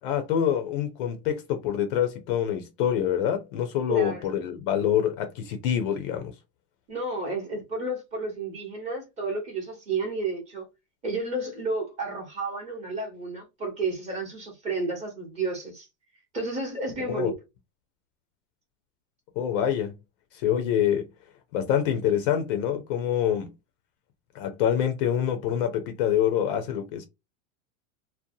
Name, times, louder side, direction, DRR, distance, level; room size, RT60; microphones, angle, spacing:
voice 1, 0.0-6.3 17.1-17.3 19.4-20.0 20.3-21.1 21.5-23.5 24.3-27.0, left 9 dB, 45° left, 0.5 m, -26 dB
voice 2, 3.9-4.3 6.9-10.6 11.0-15.9 16.3-17.4, right 3 dB, 20° right, 0.8 m, -31 dB
2.6 x 2.2 x 2.5 m
supercardioid pair, 175°, 38 cm